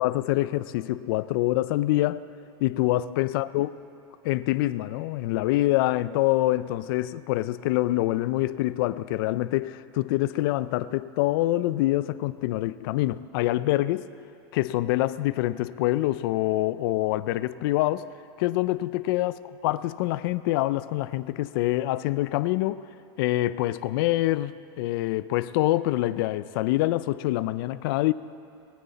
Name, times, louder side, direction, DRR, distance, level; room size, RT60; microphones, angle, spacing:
voice 1, 0.0-2.2 2.6-3.8 4.2-14.1 14.5-18.1 18.4-19.4 19.6-22.8 23.2-28.1, left 16 dB, 60° left, 16 dB, 0.4 m, -25 dB
20.5 x 9.5 x 4.1 m, 2.5 s
supercardioid pair, 155°, 13 cm